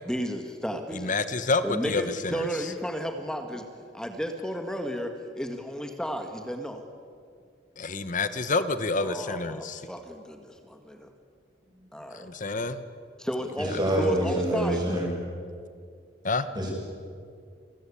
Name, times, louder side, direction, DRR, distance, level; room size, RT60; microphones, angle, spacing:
voice 1, 0.1-1.2 1.6-3.6 3.9-6.8 9.0-11.1 11.9-12.3 13.2-15.0, equal, 5° left, 5 dB, 1.6 m, -33 dB
voice 2, 0.9-2.5 7.8-9.8 12.1-12.8 16.2-16.5, left 3 dB, 45° left, 12 dB, 1.2 m, -28 dB
voice 3, 13.6-15.1 16.5-16.7, right 1 dB, 25° right, -2 dB, 7.8 m, -26 dB
29.0 x 20.5 x 8.5 m, 2.2 s
head